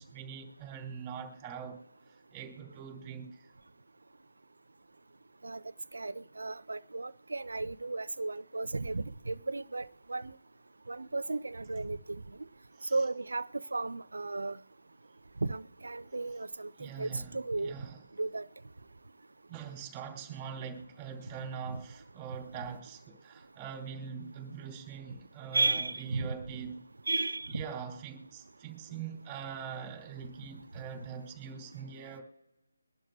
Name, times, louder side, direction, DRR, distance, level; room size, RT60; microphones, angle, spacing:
voice 1, 0.0-1.8 2.3-3.5 12.8-13.0 16.8-18.0 19.5-26.8 27.5-32.2, right 7 dB, 15° right, 3.6 m, -43 dB
voice 2, 5.9-10.3 10.9-12.2 12.9-14.6 15.4-17.7 18.2-18.5 21.7-21.8 25.5-26.3 27.1-27.6, right 3 dB, 70° right, 0.5 m, -34 dB
23.5 x 11.5 x 2.3 m
figure-of-eight pair, 155°, 0 cm